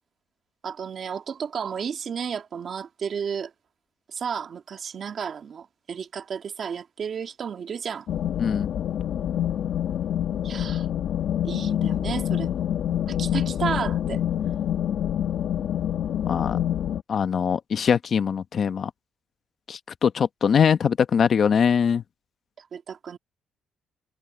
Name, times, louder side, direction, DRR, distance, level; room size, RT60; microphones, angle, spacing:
voice 1, 0.6-3.5 4.1-8.1 10.4-10.9 11.4-12.6 13.1-14.2 22.6-23.2, right 7 dB, 50° right, 2.0 m, -32 dB
sound 1, 8.1-17.0, left 10 dB, 65° left, 1.5 m, -26 dB
voice 2, 16.3-16.6 17.1-18.9 19.7-22.0, left 7 dB, 50° left, 1.1 m, -22 dB
cardioid pair, 110°, 0 cm